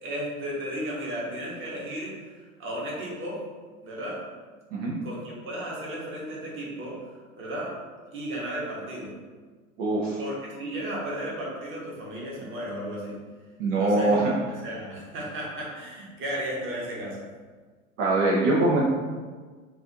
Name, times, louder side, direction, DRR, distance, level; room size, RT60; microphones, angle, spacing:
voice 1, 0.0-3.4 3.8-4.2 5.0-7.0 7.4-7.8 8.1-9.2 10.2-13.2 13.8-14.3 14.6-17.3, right 1 dB, 30° right, -4 dB, 1.1 m, -34 dB
voice 2, 9.8-10.2 13.6-14.3 18.0-18.8, right 2 dB, 65° right, -4 dB, 0.8 m, -23 dB
3.9 x 2.5 x 2.8 m, 1.5 s
hypercardioid pair, 95°, 41 cm